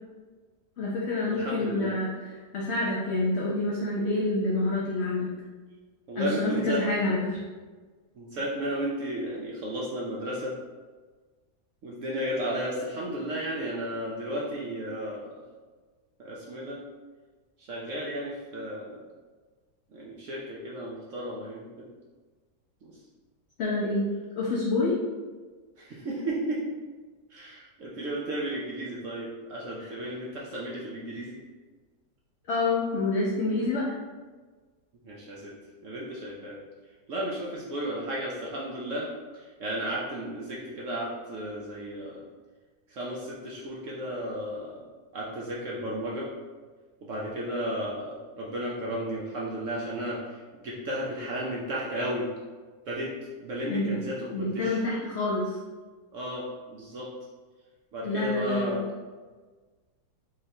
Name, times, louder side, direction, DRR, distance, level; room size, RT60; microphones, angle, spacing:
voice 1, 0.8-2.1 2.5-5.3 6.1-7.4 23.6-24.1 24.4-25.0 32.5-33.9 53.7-53.9 54.3-55.6 58.0-58.9, left 2 dB, 65° left, -5 dB, 0.6 m, -27 dB
voice 2, 1.3-2.0 6.1-6.8 8.2-10.5 11.8-15.3 16.2-16.8 17.6-19.0 19.9-21.9 22.8-22.9 25.8-26.6 27.3-31.4 35.0-35.5 35.8-36.6 37.1-42.2 42.9-44.8 45.1-46.3 47.0-52.3 52.9-53.1 53.4-54.8 56.1-57.1 57.9-58.8, right 1 dB, 65° right, -4 dB, 0.8 m, -34 dB
3.9 x 3.2 x 2.7 m, 1.4 s
omnidirectional pair, 1.8 m